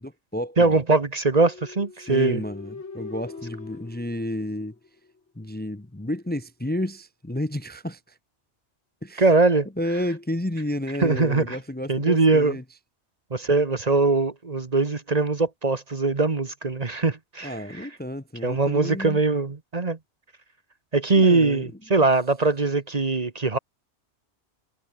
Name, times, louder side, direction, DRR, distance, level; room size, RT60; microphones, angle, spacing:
voice 1, 0.0-0.8 2.1-4.7 5.3-8.2 9.0-9.3 9.8-12.6 17.4-19.2 21.1-22.1, left 1 dB, 10° left, 0.9 m, -31 dB
voice 2, 0.6-2.4 9.2-9.7 11.0-11.6 11.9-12.5 13.3-17.8 18.4-20.0 20.9-23.6, right 3 dB, 35° right, 1.3 m, -21 dB
sound 1, 1.3-5.2, left 4 dB, 85° left, 2.6 m, -42 dB
omnidirectional pair, 1.2 m